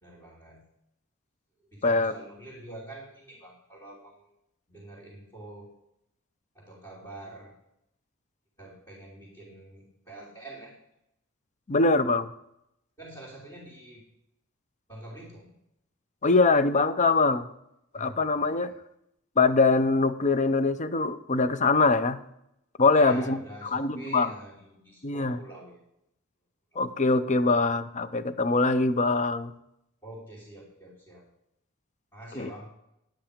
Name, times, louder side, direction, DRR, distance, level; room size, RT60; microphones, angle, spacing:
voice 1, 0.0-0.6 1.6-4.3 4.7-5.7 6.5-7.5 8.6-10.7 13.0-14.1 14.9-15.6 17.9-18.7 22.9-25.8 26.7-26.8 30.0-31.2 32.1-32.7, right 1 dB, 15° left, -8 dB, 3.0 m, -45 dB
voice 2, 1.8-2.1 11.7-12.3 16.2-17.5 17.9-18.7 19.4-22.2 22.8-23.4 23.7-24.3 25.0-25.4 26.8-29.5 32.4-32.5, left 3 dB, 35° left, 13 dB, 0.6 m, -23 dB
10.0 x 8.8 x 5.1 m, 0.80 s
head